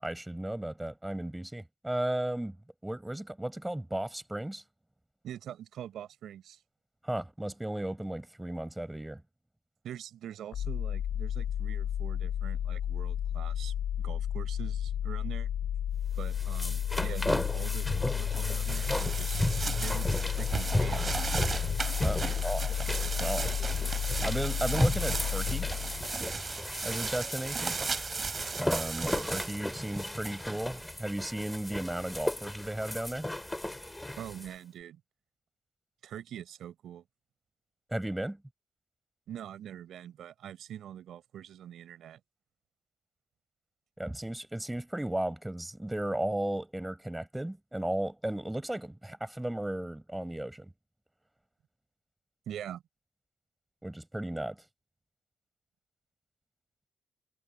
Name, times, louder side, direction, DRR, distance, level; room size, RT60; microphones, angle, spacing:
voice 1, 0.0-2.6 2.8-4.6 7.0-9.2 22.0-22.7 23.1-23.5 24.2-25.7 26.8-27.8 28.6-33.4 37.9-38.4 44.0-50.7 53.8-54.6, right 1 dB, 10° right, 7.3 m, -35 dB
voice 2, 5.2-6.6 9.8-15.5 16.2-21.7 22.2-22.4 34.2-35.0 36.0-37.0 39.3-42.2 52.5-52.8, right 10 dB, 70° right, 4.5 m, -44 dB
sound 1, 10.5-26.3, left 10 dB, 70° left, 2.5 m, -32 dB
sound 2, 16.1-34.5, left 1 dB, 10° left, 3.4 m, -35 dB
sound 3, 18.3-30.8, right 4 dB, 35° right, 3.6 m, -36 dB
cardioid pair, 90°, 0 cm